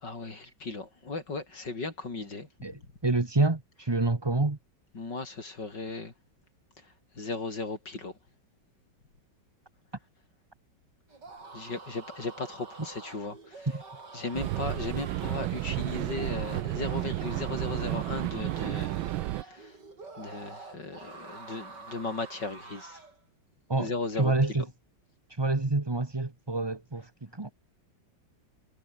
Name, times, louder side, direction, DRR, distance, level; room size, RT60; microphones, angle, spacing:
voice 1, 0.0-2.5 4.9-6.1 7.2-8.1 11.5-13.7 14.1-19.1 19.4-19.7 20.2-23.0 23.8-24.3, left 3 dB, 60° left, 5.1 m, -36 dB
voice 2, 2.6-4.6 13.7-13.8 23.7-24.7 25.3-27.5, right 2 dB, 15° right, 1.1 m, -28 dB
sound 1, 11.1-23.2, right 3 dB, 60° right, 4.7 m, -47 dB
sound 2, 14.3-19.4, right 16 dB, 85° right, 1.4 m, -32 dB
omnidirectional pair, 2.1 m